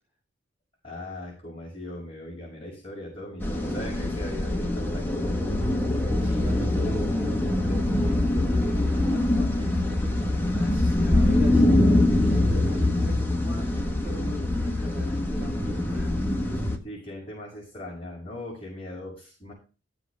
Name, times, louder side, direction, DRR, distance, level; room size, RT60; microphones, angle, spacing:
voice 1, 0.8-5.6 16.8-19.5, left 1 dB, 30° left, -6 dB, 6.0 m, -39 dB
sound 1, 3.4-16.8, left 1 dB, 10° left, 1.3 m, -24 dB
voice 2, 6.2-16.2, right 1 dB, 10° right, -4 dB, 3.5 m, -41 dB
13.0 x 7.8 x 3.4 m, 0.35 s
head